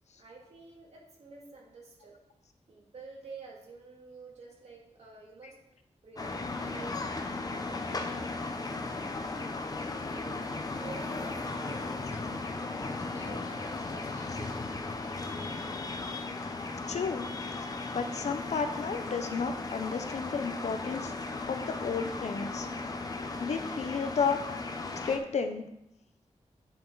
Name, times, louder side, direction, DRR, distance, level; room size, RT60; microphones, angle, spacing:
voice 1, 0.1-2.2 2.7-5.6 6.0-8.3 8.6-9.6 9.9-14.6, right 3 dB, 65° right, -2 dB, 2.6 m, -50 dB
sound 1, 6.2-25.2, left 3 dB, 30° left, 0.8 m, -36 dB
voice 2, 16.9-17.3 17.9-21.1 21.5-22.7 23.4-24.4 25.0-25.6, left 5 dB, 75° left, 7 dB, 0.9 m, -32 dB
9.5 x 7.5 x 4.0 m, 0.82 s
wide cardioid pair, 175°, 12 cm